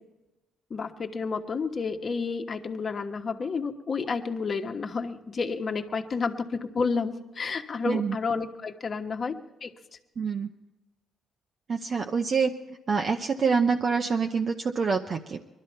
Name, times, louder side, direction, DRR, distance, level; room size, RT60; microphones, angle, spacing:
voice 1, 0.7-9.3 9.6-9.7, left 4 dB, 40° left, 4 dB, 1.3 m, -30 dB
voice 2, 7.8-8.2 10.2-10.5 11.7-12.5 12.9-15.4, right 5 dB, 45° right, 3 dB, 0.8 m, -26 dB
21.5 x 12.5 x 4.5 m, 1.1 s
cardioid pair, 90°, 0 cm